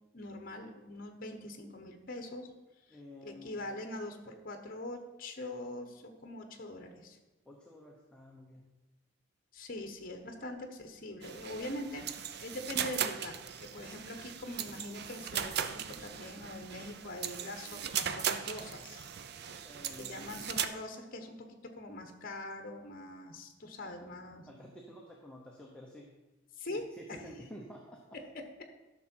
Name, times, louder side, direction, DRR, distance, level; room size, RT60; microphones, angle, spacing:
voice 1, 0.1-2.5 2.9-7.2 9.5-19.1 20.0-21.4 21.6-24.6 26.6-27.2 28.1-28.6, left 1 dB, 45° left, 5 dB, 1.0 m, -43 dB
voice 2, 2.9-3.6 7.5-8.7 19.6-20.2 24.5-26.1 26.7-28.0, equal, 5° left, -2 dB, 0.9 m, -50 dB
sound 1, 11.2-20.7, right 8 dB, 55° right, 0.5 m, -38 dB
12.5 x 6.2 x 4.4 m, 1.1 s
head